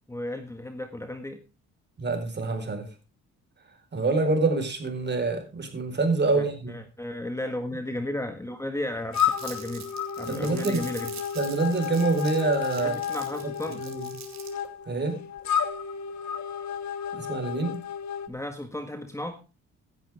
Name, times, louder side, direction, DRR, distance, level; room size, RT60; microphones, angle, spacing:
voice 1, 0.1-1.4 6.3-9.9 10.2-11.1 12.8-13.8 18.3-19.4, left 1 dB, 10° left, 7 dB, 1.6 m, -34 dB
voice 2, 2.0-2.9 3.9-6.8 10.3-10.8 11.3-12.9 13.7-14.1 14.9-15.2 17.1-17.8, right 3 dB, 35° right, 6 dB, 4.6 m, -26 dB
sound 1, 9.1-18.3, left 8 dB, 65° left, 1.6 m, -32 dB
Crumpling crinkling, 9.1-14.7, right 7 dB, 65° right, 3.6 m, -44 dB
16.5 x 10.5 x 3.5 m, 0.29 s
cardioid pair, 90°, 30 cm